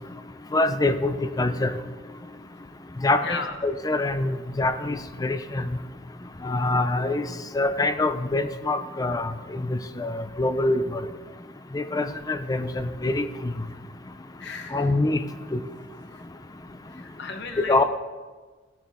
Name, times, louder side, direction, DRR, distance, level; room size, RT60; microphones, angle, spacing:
voice 1, 0.5-1.7 3.0-5.6 6.4-7.3 7.5-11.0 11.7-13.5 14.7-15.2 15.5-15.6 17.7-17.8, left 2 dB, 20° left, 10 dB, 0.5 m, -25 dB
voice 2, 3.2-3.6 14.4-14.9 16.1-16.2 16.9-17.8, left 4 dB, 65° left, 4 dB, 1.1 m, -35 dB
14.5 x 8.9 x 3.6 m, 1.4 s
head